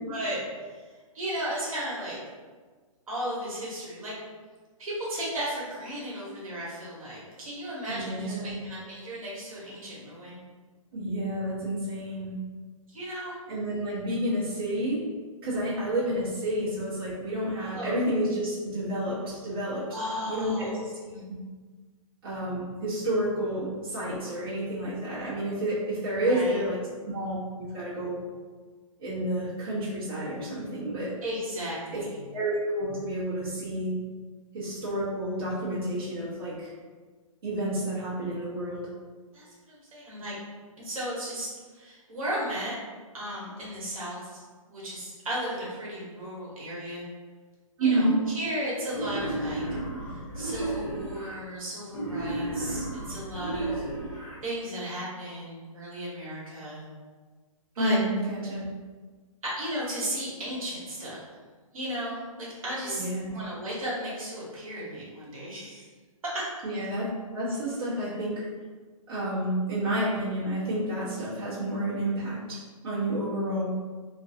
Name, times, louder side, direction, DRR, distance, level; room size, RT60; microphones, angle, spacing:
voice 1, 0.1-0.4 1.1-2.2 3.1-4.2 4.8-10.4 12.9-13.4 17.6-18.0 19.9-20.7 21.0-21.2 26.2-26.6 31.2-32.2 39.3-40.4 40.8-41.5 41.7-42.7 43.1-44.4 44.7-47.0 47.8-49.6 50.3-53.8 54.4-56.8 57.8-58.0 59.6-61.2 61.7-63.0 63.3-65.8 66.2-66.5 68.0-68.1, equal, 70° right, -6 dB, 1.1 m, -35 dB
voice 2, 7.9-8.7 10.9-12.3 13.5-15.0 15.4-19.9 20.3-20.9 21.3-21.4 22.2-28.2 29.0-31.2 31.9-32.0 32.3-34.0 34.5-36.7 37.4-38.9 47.8-48.2 57.7-58.7 62.8-63.3 66.6-68.5 69.1-73.7, right 1 dB, 40° right, -11 dB, 0.8 m, -30 dB
Wild animals, 48.9-51.4 51.9-54.4, right 2 dB, 35° left, 1.1 m, -33 dB
2.4 x 2.2 x 2.6 m, 1.4 s
hypercardioid pair, 175°, 18 cm